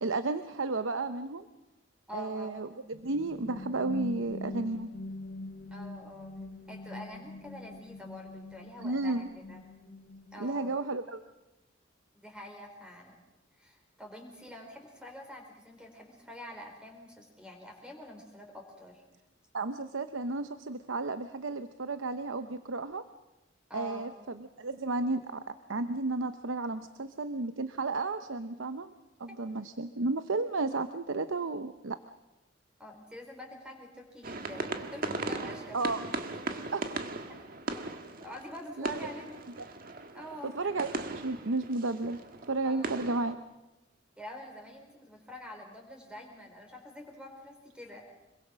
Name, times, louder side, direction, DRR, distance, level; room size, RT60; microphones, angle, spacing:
voice 1, 0.0-1.5 2.1-4.9 8.8-9.3 10.4-11.2 19.5-23.0 23.7-24.1 24.4-25.4 25.7-28.9 29.2-32.0 35.7-36.0 36.7-36.9 38.8-39.0 40.4-43.4, right 3 dB, 90° right, 10 dB, 0.8 m, -33 dB
voice 2, 2.1-2.6 5.7-6.3 6.7-9.6 10.3-10.8 12.1-13.2 13.5-19.0 23.7-24.1 32.8-36.0 37.4-37.8 38.2-39.4 40.1-40.7 42.6-42.9 44.2-48.1, left 1 dB, 5° right, 2 dB, 4.3 m, -46 dB
sound 1, 2.9-10.7, left 2 dB, 45° left, 1.0 m, -43 dB
sound 2, 34.2-43.3, right 2 dB, 50° right, 1.6 m, -38 dB
26.0 x 22.5 x 6.3 m, 1.0 s
head